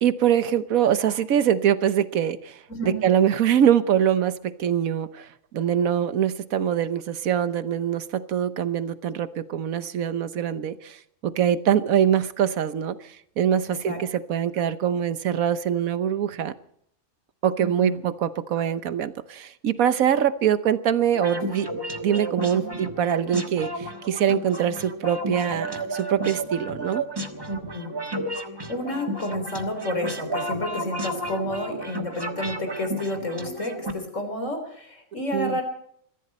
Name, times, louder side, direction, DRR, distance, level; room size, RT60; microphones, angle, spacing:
voice 1, 0.0-2.6 2.8-5.3 5.5-11.0 11.2-13.0 13.4-16.5 17.4-27.0 35.3-35.6, right 9 dB, 80° right, 12 dB, 1.4 m, -23 dB
voice 2, 2.7-3.0 13.9-14.0 17.6-18.0 22.5-22.6 27.5-27.9 28.3-35.6, left 1 dB, 65° left, 5 dB, 4.3 m, -30 dB
sound 1, 21.1-33.9, right 1 dB, 20° right, 1.4 m, -32 dB
22.0 x 15.0 x 4.3 m, 0.68 s
omnidirectional pair, 1.4 m